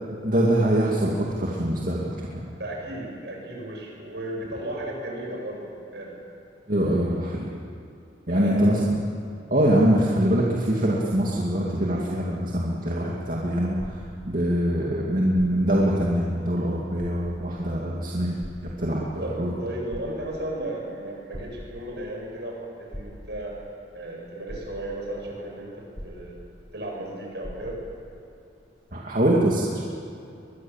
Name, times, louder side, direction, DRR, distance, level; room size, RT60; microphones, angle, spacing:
voice 1, 0.2-2.6 6.7-7.5 8.3-9.0 9.5-14.0 14.2-19.5 28.9-29.8, right 1 dB, 50° right, -4 dB, 2.5 m, -23 dB
voice 2, 2.6-6.2 6.9-7.2 8.3-8.9 19.2-23.6 23.9-26.4 26.7-27.8, right 1 dB, 65° right, -1 dB, 7.4 m, -35 dB
sound 1, 13.8-14.7 15.3-15.9 16.4-16.5 16.9-17.6 18.4-19.2 19.7-20.6 21.3-22.1 22.9-23.6 24.1-24.2 24.5-25.2 25.9-26.8 27.0-27.1 27.4-28.0 28.8-28.9, equal, 15° left, 5.7 m, -41 dB
22.5 x 22.0 x 7.4 m, 2.6 s
head